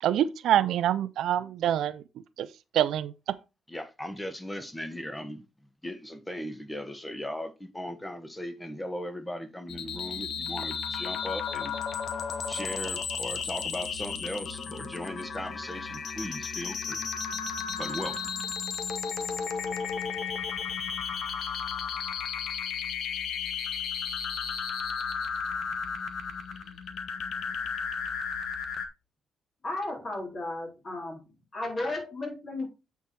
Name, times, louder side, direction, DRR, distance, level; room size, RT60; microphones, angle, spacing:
voice 1, 0.0-2.5 2.7-3.4, right 11 dB, 75° right, 0.5 m, -26 dB
voice 2, 3.7-5.4 5.8-11.7 12.5-17.1 17.8-18.3, left 1 dB, 10° left, 1.4 m, -38 dB
sound 1, 9.7-28.9, left 6 dB, 65° left, 1.3 m, -34 dB
voice 3, 29.6-31.2 31.5-32.7, left 2 dB, 35° left, 3.7 m, -34 dB
8.5 x 4.7 x 4.3 m
cardioid pair, 90°, 0 cm